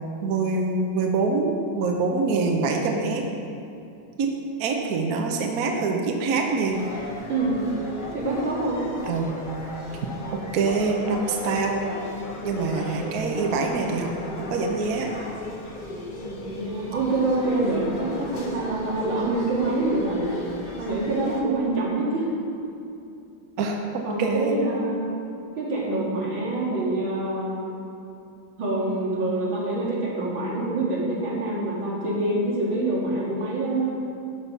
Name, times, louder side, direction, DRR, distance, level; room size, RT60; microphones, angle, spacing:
voice 1, 0.2-3.2 4.2-4.3 4.6-6.8 9.1-9.4 10.3-11.9 12.4-14.1 14.4-15.1 23.6-24.6, right 4 dB, 60° right, 2 dB, 1.1 m, -25 dB
sound 1, 6.6-21.4, left 1 dB, 35° left, 0.8 m, -37 dB
voice 2, 8.1-8.8 12.5-12.8 16.2-20.3 20.8-22.3 24.0-25.1 25.6-27.6 28.6-34.0, right 2 dB, 85° right, -6 dB, 2.8 m, -26 dB
11.5 x 4.7 x 5.6 m, 2.7 s
omnidirectional pair, 2.1 m